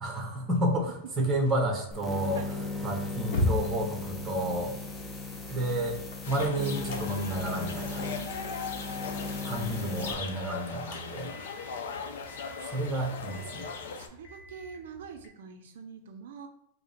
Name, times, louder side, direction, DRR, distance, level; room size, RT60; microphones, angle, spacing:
voice 1, 0.0-2.4 2.8-4.7 5.5-6.0 6.3-8.1 9.4-11.3 12.6-13.7, right 1 dB, 15° right, 1 dB, 0.8 m, -30 dB
sound 1, 0.6-15.3, left 2 dB, 50° left, 0.9 m, -40 dB
sound 2, 1.9-10.2, left 3 dB, 10° left, 0.4 m, -37 dB
sound 3, 6.2-14.1, left 5 dB, 80° left, 0.5 m, -39 dB
voice 2, 8.2-8.7 13.9-16.5, right 6 dB, 75° right, 6 dB, 0.4 m, -45 dB
4.6 x 2.0 x 3.4 m, 0.79 s
supercardioid pair, 160°, 0 cm